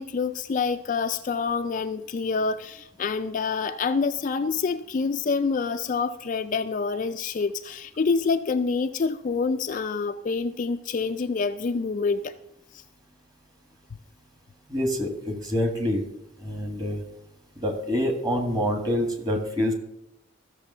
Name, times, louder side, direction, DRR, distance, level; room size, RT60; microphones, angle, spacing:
voice 1, 0.0-12.3 12.7-12.8, left 4 dB, 40° left, 8 dB, 0.3 m, -27 dB
voice 2, 14.7-16.0 16.4-17.0 17.6-19.7, equal, 20° right, 4 dB, 1.6 m, -26 dB
14.0 x 6.8 x 5.5 m, 0.84 s
head